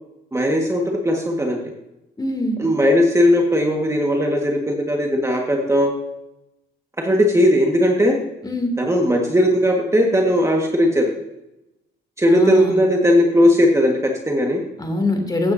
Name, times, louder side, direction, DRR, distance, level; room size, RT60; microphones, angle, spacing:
voice 1, 0.3-1.6 2.6-5.9 7.0-8.1 8.8-11.1 12.2-14.6, equal, 15° right, 1 dB, 1.6 m, -17 dB
voice 2, 2.2-2.6 8.4-8.7 12.3-12.8 14.8-15.5, left 2 dB, 20° left, 4 dB, 2.6 m, -23 dB
15.0 x 9.2 x 2.7 m, 0.89 s
cardioid pair, 90°, 20 cm